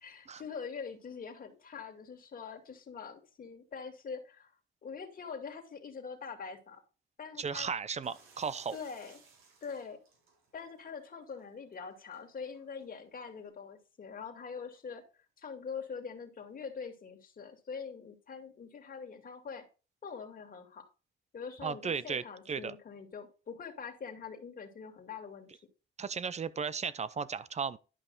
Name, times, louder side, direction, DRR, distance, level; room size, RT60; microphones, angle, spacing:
voice 1, 0.0-4.5 4.8-6.8 7.2-7.7 8.7-9.2 9.6-10.0 10.5-15.0 15.4-19.6 20.0-20.8 21.3-25.5, left 5 dB, 45° left, 2.3 m, -44 dB
voice 2, 7.4-8.8 21.6-22.7 26.0-27.8, right 6 dB, 35° right, 0.7 m, -35 dB
sound 1, 8.0-13.5, right 4 dB, 85° right, 3.6 m, -63 dB
11.0 x 5.3 x 4.0 m
cardioid pair, 90°, 20 cm